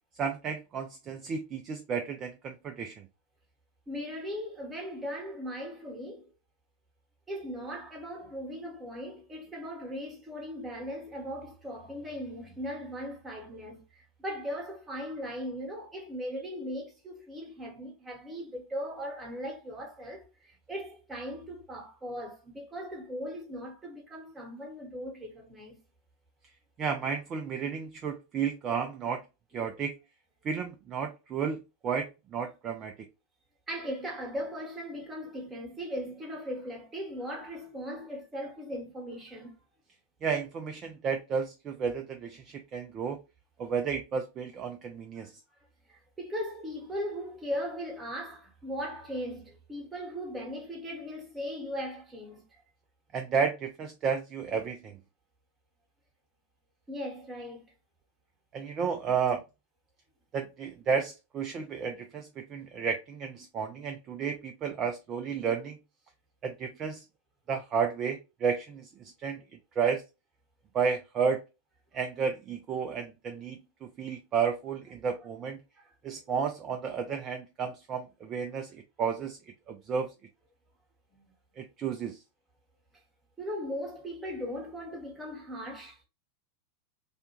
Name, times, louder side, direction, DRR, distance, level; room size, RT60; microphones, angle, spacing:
voice 1, 0.2-3.1 26.8-29.2 29.5-29.9 30.4-31.6 31.8-32.9 40.2-43.2 43.6-45.3 53.1-55.0 58.5-59.4 60.3-65.8 66.4-67.0 67.5-69.4 69.8-70.0 70.7-71.4 71.9-75.6 76.0-79.4 79.7-80.1 81.6-82.2, right 6 dB, 30° right, 0.3 m, -32 dB
voice 2, 3.9-6.3 7.3-25.8 33.7-39.6 45.9-52.6 56.9-57.7 75.8-75.9 81.1-81.3 83.4-86.1, equal, 15° right, 1.0 m, -38 dB
2.4 x 2.1 x 2.9 m
figure-of-eight pair, 90°, 0 cm